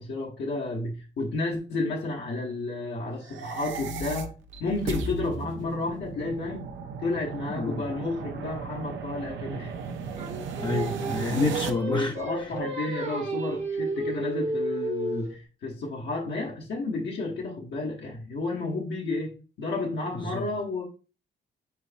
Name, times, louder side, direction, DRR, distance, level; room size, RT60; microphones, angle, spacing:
voice 1, 0.0-4.3 4.6-6.7 7.0-9.7 11.9-20.8, left 2 dB, 65° left, 1.1 m, -31 dB
sound 1, 3.2-11.7, right 4 dB, 70° right, 0.7 m, -36 dB
Singing, 10.2-15.4, right 2 dB, 35° right, 1.0 m, -32 dB
voice 2, 10.6-12.2 20.1-20.4, left 3 dB, 25° left, 0.6 m, -28 dB
4.5 x 4.1 x 2.6 m
cardioid pair, 90°, 20 cm